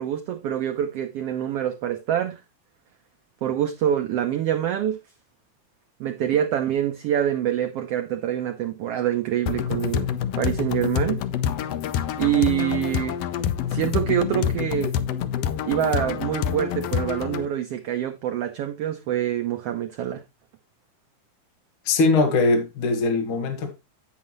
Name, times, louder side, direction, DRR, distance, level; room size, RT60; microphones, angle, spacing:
voice 1, 0.0-2.4 3.4-5.0 6.0-11.2 12.2-13.2 13.7-15.0 15.6-20.2, right 10 dB, 85° right, 1.3 m, -25 dB
sound 1, 9.5-17.5, left 9 dB, 75° left, 1.4 m, -27 dB
voice 2, 21.9-23.7, left 3 dB, 50° left, 1.9 m, -21 dB
8.8 x 8.2 x 3.0 m
omnidirectional pair, 3.5 m